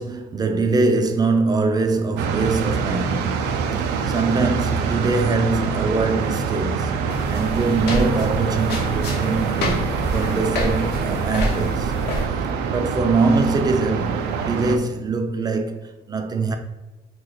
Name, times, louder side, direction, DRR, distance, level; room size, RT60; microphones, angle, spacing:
voice 1, 0.0-7.0 7.3-9.7 10.1-11.9 12.7-16.6, right 3 dB, 25° right, 0.4 m, -23 dB
sound 1, 2.2-14.8, right 6 dB, 85° right, 0.4 m, -25 dB
sound 2, 7.1-12.3, left 1 dB, 75° left, 0.9 m, -28 dB
3.2 x 2.4 x 3.8 m
cardioid pair, 110°, 17 cm